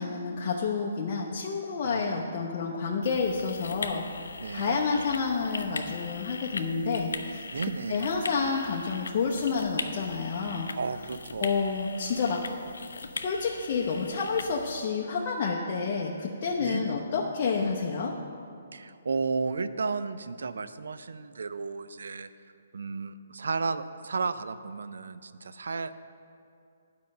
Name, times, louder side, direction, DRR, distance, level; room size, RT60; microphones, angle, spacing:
voice 1, 0.0-4.0 4.5-7.5 7.9-10.7 11.4-12.4 13.1-18.1, left 5 dB, 40° left, -2 dB, 0.7 m, -29 dB
voice 2, 1.8-2.6 4.4-4.8 7.5-8.1 10.8-11.6 16.6-17.0 18.7-22.3 22.7-26.0, right 4 dB, 75° right, 12 dB, 0.4 m, -33 dB
sound 1, 3.0-14.9, left 3 dB, 85° left, 0.6 m, -40 dB
9.4 x 5.3 x 6.5 m, 2.5 s
hypercardioid pair, 150°, 0 cm